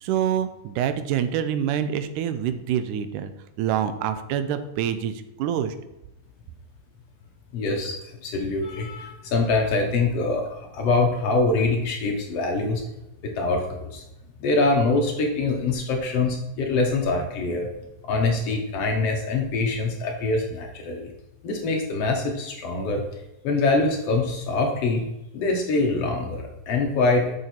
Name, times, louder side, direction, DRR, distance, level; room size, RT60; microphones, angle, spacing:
voice 1, 0.0-3.3 3.6-5.8, right 9 dB, 90° right, 11 dB, 2.1 m, -26 dB
voice 2, 7.5-12.8 13.2-14.0 14.4-17.7 18.0-21.1 21.4-23.0 23.4-25.1 25.3-27.3, left 3 dB, 65° left, 2 dB, 1.8 m, -24 dB
6.7 x 6.7 x 4.4 m, 0.92 s
omnidirectional pair, 3.6 m